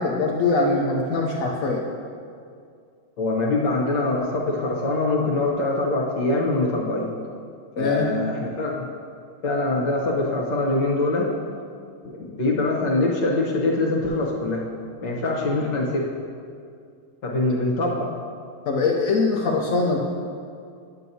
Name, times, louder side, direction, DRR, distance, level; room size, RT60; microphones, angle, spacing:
voice 1, 0.0-1.8 7.8-8.1 18.7-20.0, left 3 dB, 80° left, 0 dB, 0.7 m, -22 dB
voice 2, 3.2-7.1 7.8-8.9 9.4-11.3 12.2-14.6 15.0-16.1 17.2-18.1, left 2 dB, 65° left, -2 dB, 1.6 m, -23 dB
10.5 x 7.5 x 2.7 m, 2.3 s
omnidirectional pair, 2.2 m